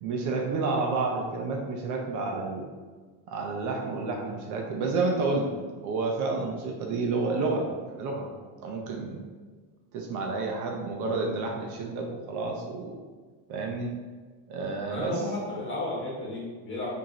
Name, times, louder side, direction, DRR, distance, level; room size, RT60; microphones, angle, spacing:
voice 1, 0.0-2.7 3.3-5.5 5.8-8.3 8.6-9.2 9.9-13.0 13.5-13.9 14.5-15.2, right 3 dB, 50° right, 1 dB, 0.6 m, -30 dB
voice 2, 14.9-16.9, left 2 dB, 30° left, -5 dB, 1.4 m, -33 dB
4.9 x 2.7 x 3.0 m, 1.4 s
cardioid pair, 160°, 39 cm